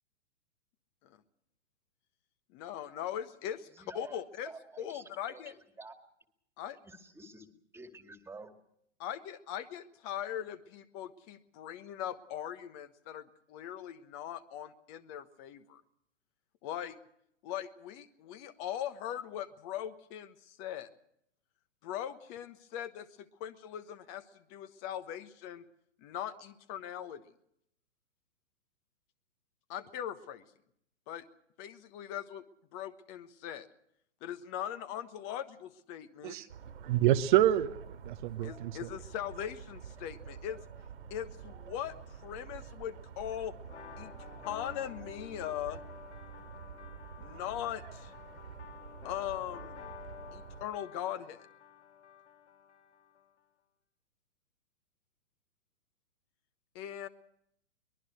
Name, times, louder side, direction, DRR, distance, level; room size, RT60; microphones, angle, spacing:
voice 1, 2.5-4.5 4.8-5.5 6.6-6.8 9.0-15.8 16.6-17.0 17.4-20.9 21.8-24.2 24.5-25.6 26.0-27.2 29.7-30.4 31.1-31.2 31.6-32.4 32.7-33.7 34.2-36.4 38.4-40.6 41.1-43.5 44.0-44.1 44.4-45.8 47.2-48.1 49.0-49.7 50.3-51.5 56.7-57.1, left 10 dB, 30° left, 11 dB, 1.2 m, -40 dB
voice 2, 3.7-5.9 6.8-8.5, right 3 dB, 5° right, 7 dB, 2.1 m, -50 dB
sound 1, 36.5-50.7, right 7 dB, 65° right, 2.8 m, -49 dB
voice 3, 36.8-37.8 38.0-38.9, right 13 dB, 40° right, 9 dB, 1.0 m, -27 dB
sound 2, 43.6-53.2, left 8 dB, 65° left, 3.1 m, -51 dB
23.0 x 21.0 x 6.4 m, 0.74 s
figure-of-eight pair, 115°, 37 cm